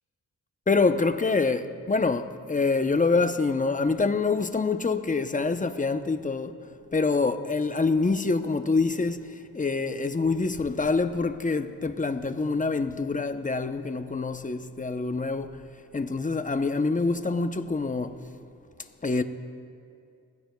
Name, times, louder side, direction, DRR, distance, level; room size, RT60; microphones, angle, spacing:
voice 1, 0.7-9.3 9.5-15.6 15.9-18.2 19.0-19.2, left 4 dB, 20° left, 0.7 m, -26 dB
21.0 x 15.5 x 2.3 m
cardioid pair, 50°, 38 cm